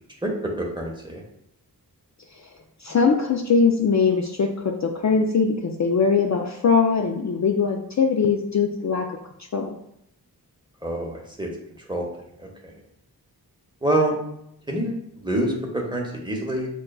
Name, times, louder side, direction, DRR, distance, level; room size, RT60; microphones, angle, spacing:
voice 1, 0.6-1.2 10.8-11.5 11.8-12.0 12.4-12.7 13.8-14.2 14.7-16.7, right 1 dB, 10° right, -1 dB, 0.9 m, -26 dB
voice 2, 2.8-9.1 9.5-9.7, left 5 dB, 45° left, 2 dB, 0.4 m, -21 dB
6.3 x 2.3 x 2.3 m, 0.77 s
wide cardioid pair, 60°, 39 cm